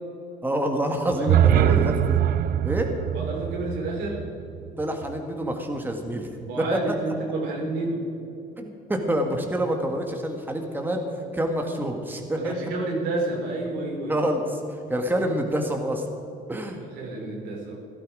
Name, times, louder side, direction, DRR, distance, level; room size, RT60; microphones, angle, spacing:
voice 1, 0.4-2.2 2.6-2.9 4.8-6.3 6.6-7.0 8.6-11.0 11.3-12.5 14.1-16.1 16.5-16.8, right 1 dB, 10° right, 3 dB, 1.8 m, -27 dB
sound 1, 1.1-5.2, right 10 dB, 60° right, 0.5 m, -23 dB
voice 2, 1.1-1.9 3.1-4.3 6.4-8.0 12.3-14.2 16.8-17.8, right 2 dB, 90° right, -1 dB, 4.0 m, -30 dB
16.0 x 12.5 x 5.0 m, 2.7 s
cardioid pair, 110°, 17 cm